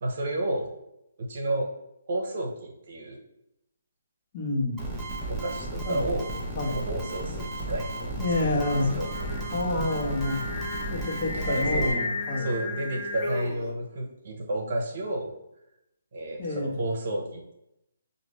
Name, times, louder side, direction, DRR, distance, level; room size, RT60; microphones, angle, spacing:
voice 1, 0.0-0.7 1.2-1.7 2.1-3.2 5.3-6.3 6.7-8.2 8.9-9.1 9.7-9.9 11.5-12.0 12.4-15.3 16.1-17.5, right 1 dB, 45° right, 1 dB, 0.9 m, -31 dB
voice 2, 4.3-4.9 5.8-6.1 6.5-6.9 8.2-9.1 9.5-10.4 10.9-12.6 16.4-16.7, left 2 dB, 35° left, -3 dB, 1.3 m, -28 dB
sound 1, 4.8-11.9, right 1 dB, 5° right, 0.9 m, -34 dB
Singing, 8.6-13.7, left 2 dB, 15° left, 1.2 m, -34 dB
6.2 x 2.6 x 3.2 m, 0.85 s
figure-of-eight pair, 135°, 0 cm